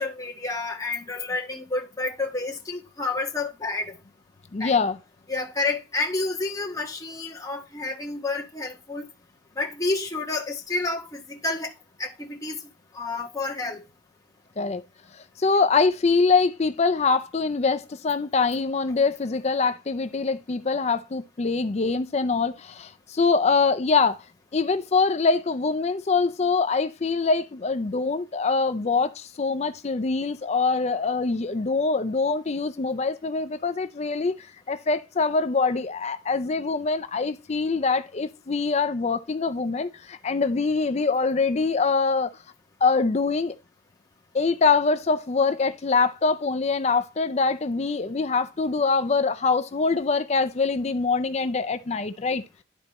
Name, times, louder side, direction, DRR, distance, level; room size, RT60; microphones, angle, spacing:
voice 1, 0.0-4.0 4.6-4.8 5.3-9.1 9.6-11.7 12.0-12.6 12.9-13.8, left 3 dB, 15° left, 1.5 m, -29 dB
voice 2, 4.5-5.0 14.6-14.8 15.4-24.2 24.5-42.3 42.8-43.5 44.3-52.4, left 4 dB, 35° left, 0.4 m, -24 dB
11.5 x 4.3 x 4.1 m
head